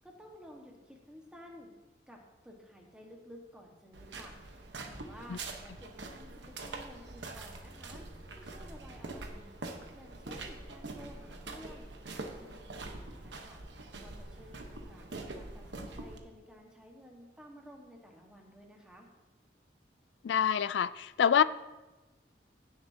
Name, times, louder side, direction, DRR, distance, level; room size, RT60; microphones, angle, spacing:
voice 1, 0.0-1.7 2.1-4.4 4.9-8.0 8.4-9.5 9.9-11.9 12.4-13.6 14.0-19.1, equal, 5° right, 0 dB, 1.4 m, -53 dB
sound 1, 3.9-16.2, right 2 dB, 75° right, 1.1 m, -44 dB
voice 2, 20.2-21.4, left 8 dB, 75° left, 16 dB, 0.3 m, -26 dB
16.0 x 7.2 x 2.8 m, 1.1 s
head